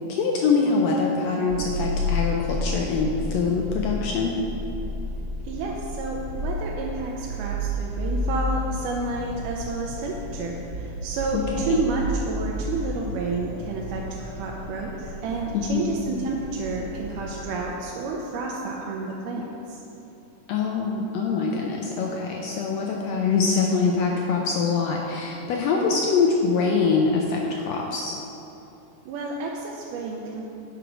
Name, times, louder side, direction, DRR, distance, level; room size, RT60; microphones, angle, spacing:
voice 1, 0.1-4.4 11.3-11.8 15.5-16.0 20.5-28.2, left 4 dB, 80° left, 0 dB, 1.5 m, -24 dB
sound 1, 1.5-17.4, left 1 dB, 65° right, 1.9 m, -32 dB
voice 2, 5.4-19.8 29.1-30.5, right 3 dB, 90° right, -1 dB, 2.2 m, -30 dB
8.2 x 5.0 x 5.9 m, 2.9 s
omnidirectional pair, 3.6 m